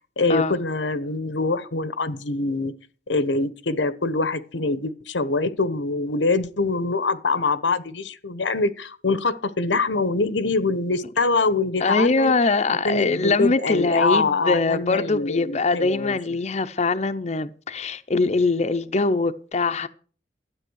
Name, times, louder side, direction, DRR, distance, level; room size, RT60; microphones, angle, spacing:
voice 1, 0.2-2.7 3.1-12.3 12.8-16.2, left 3 dB, 90° left, 1.1 m, -24 dB
voice 2, 11.8-19.9, left 3 dB, 40° left, 0.7 m, -22 dB
12.5 x 8.8 x 6.4 m
head